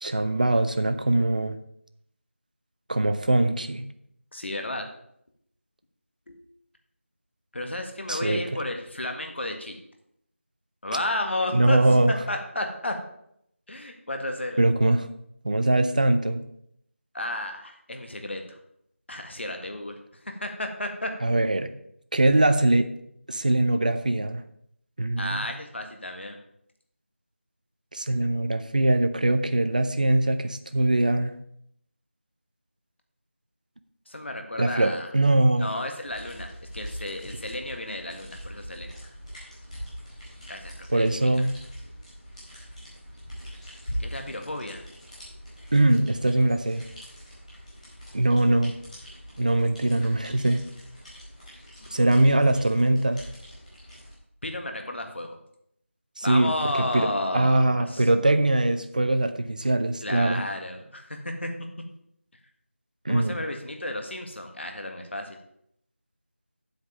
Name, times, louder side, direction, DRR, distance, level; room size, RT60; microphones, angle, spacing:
voice 1, 0.0-1.6 2.9-3.8 8.1-8.4 11.5-12.1 14.6-15.1 15.4-16.4 21.2-21.7 22.1-22.9 23.3-24.4 25.0-25.5 27.9-31.3 34.6-35.7 40.9-41.6 45.7-46.8 48.1-48.7 49.4-50.6 51.9-53.2 56.2-57.1 57.3-60.4 63.0-63.4, right 1 dB, 35° right, 9 dB, 0.6 m, -22 dB
voice 2, 4.3-4.9 6.3-6.4 7.5-9.8 10.8-11.8 12.3-13.0 13.7-14.6 17.1-18.6 19.1-20.0 20.2-21.1 25.2-26.4 34.1-35.1 35.6-39.0 40.5-41.3 44.0-44.8 51.8-52.0 54.4-55.4 56.2-58.1 60.0-61.5 63.1-65.4, left 1 dB, 55° left, 4 dB, 1.7 m, -32 dB
sound 1, 36.0-54.1, equal, 30° left, 4.8 m, -42 dB
8.4 x 8.0 x 5.0 m, 0.73 s
figure-of-eight pair, 175°, 7 cm